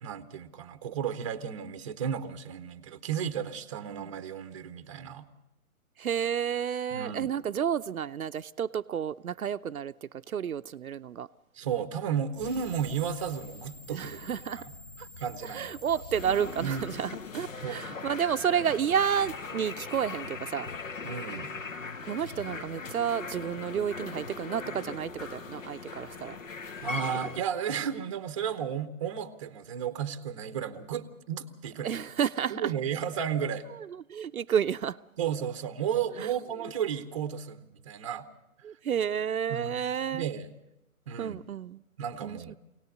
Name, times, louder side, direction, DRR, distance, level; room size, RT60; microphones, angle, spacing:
voice 1, 0.0-5.3 6.9-7.3 11.5-14.3 15.0-15.7 16.6-17.0 17.6-18.1 21.0-21.5 26.8-32.0 32.5-33.7 35.2-38.3 39.5-40.5 41.1-41.4 42.0-42.5, right 8 dB, 20° right, 0.8 m, -33 dB
voice 2, 6.0-11.3 13.9-14.6 15.4-20.7 22.0-26.4 26.7-26.8 31.8-32.7 33.7-35.0 36.2-36.3 38.6-40.3 41.2-41.8 42.2-42.5, right 8 dB, 70° right, 0.7 m, -31 dB
sound 1, 12.3-17.8, left 2 dB, 15° left, 0.8 m, -47 dB
sound 2, 16.1-27.4, left 4 dB, 60° left, 1.7 m, -40 dB
24.0 x 18.0 x 6.5 m
hypercardioid pair, 150°, 44 cm